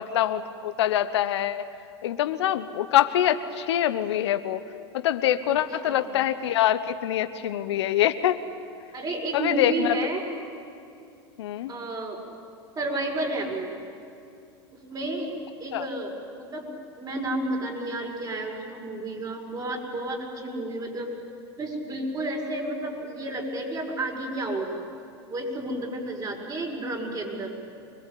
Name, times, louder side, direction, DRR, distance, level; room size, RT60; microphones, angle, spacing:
voice 1, 0.0-1.7 2.0-4.6 4.9-8.4 9.3-10.0 11.4-11.7 15.7-15.8, left 11 dB, 75° left, 10 dB, 1.1 m, -24 dB
voice 2, 8.9-10.2 11.7-12.2 12.8-13.7 14.7-15.3 15.6-16.7 17.0-21.1 21.6-24.8 25.3-27.5, right 1 dB, 30° right, 0 dB, 6.2 m, -31 dB
25.0 x 21.0 x 8.5 m, 2.5 s
hypercardioid pair, 95°, 14 cm